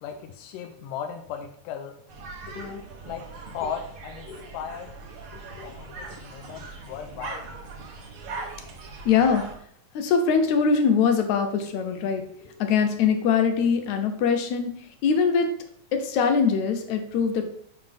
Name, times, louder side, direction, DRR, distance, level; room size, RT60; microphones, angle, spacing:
voice 1, 0.0-2.0 2.5-4.9 5.6-7.5, left 7 dB, 85° left, 5 dB, 2.3 m, -37 dB
sound 1, 2.1-9.6, right 3 dB, 55° right, 1.6 m, -40 dB
voice 2, 9.1-9.5 9.9-15.5 15.9-17.5, left 6 dB, 70° left, 6 dB, 2.0 m, -23 dB
9.0 x 5.7 x 3.5 m, 0.64 s
omnidirectional pair, 3.7 m